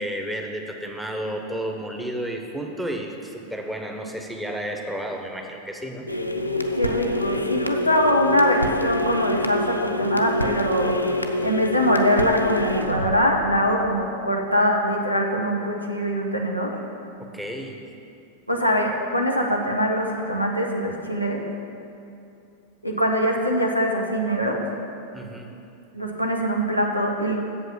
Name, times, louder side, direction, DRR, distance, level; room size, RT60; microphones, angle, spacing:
voice 1, 0.0-6.1 17.3-17.9 25.1-25.6, equal, 5° right, 2 dB, 1.0 m, -32 dB
sound 1, 6.1-14.0, left 1 dB, 90° left, 0.6 m, -26 dB
voice 2, 6.8-11.0 11.4-16.8 18.5-21.4 22.8-24.6 25.9-27.4, equal, 90° right, 0 dB, 1.2 m, -23 dB
8.2 x 7.4 x 7.0 m, 2.7 s
figure-of-eight pair, 90°, 0 cm